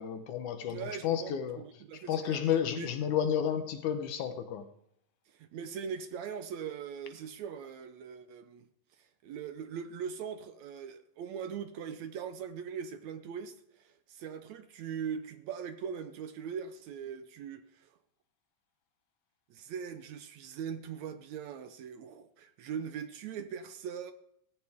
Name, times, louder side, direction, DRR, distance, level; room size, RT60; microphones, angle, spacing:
voice 1, 0.0-1.6 2.1-4.7, left 9 dB, 75° left, 2.5 m, -31 dB
voice 2, 0.7-2.9 5.3-8.7 9.0-17.9 19.5-24.1, right 7 dB, 70° right, 1.9 m, -41 dB
18.0 x 15.5 x 3.6 m
omnidirectional pair, 3.7 m